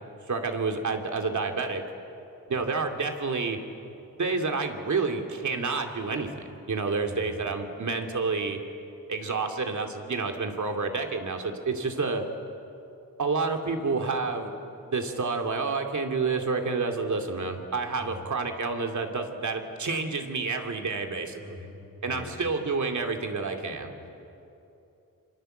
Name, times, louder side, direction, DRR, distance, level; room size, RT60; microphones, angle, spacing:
voice 1, 0.3-1.8 2.5-3.6 4.2-8.6 9.1-12.2 13.2-14.5 14.8-21.6 22.0-23.9, right 4 dB, 55° right, 4 dB, 2.7 m, -29 dB
voice 2, 7.0-7.6 17.9-18.3 21.3-22.5 24.0-24.1, left 3 dB, 40° left, 1 dB, 5.6 m, -45 dB
28.0 x 26.0 x 7.9 m, 2.8 s
wide cardioid pair, 115°, 36 cm